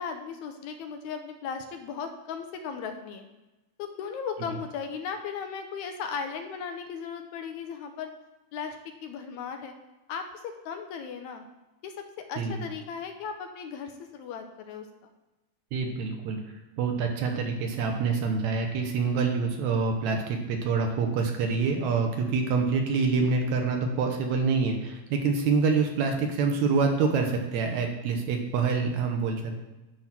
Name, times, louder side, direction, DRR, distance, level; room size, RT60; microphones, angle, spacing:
voice 1, 0.0-3.3 3.8-8.1 8.5-8.8 9.0-9.7 10.1-11.4 11.8-11.9 12.3-15.1, left 6 dB, 80° left, 6 dB, 1.8 m, -36 dB
voice 2, 15.7-16.4 16.8-29.6, right 4 dB, 70° right, 3 dB, 2.0 m, -26 dB
10.5 x 3.6 x 5.9 m, 1.0 s
omnidirectional pair, 3.7 m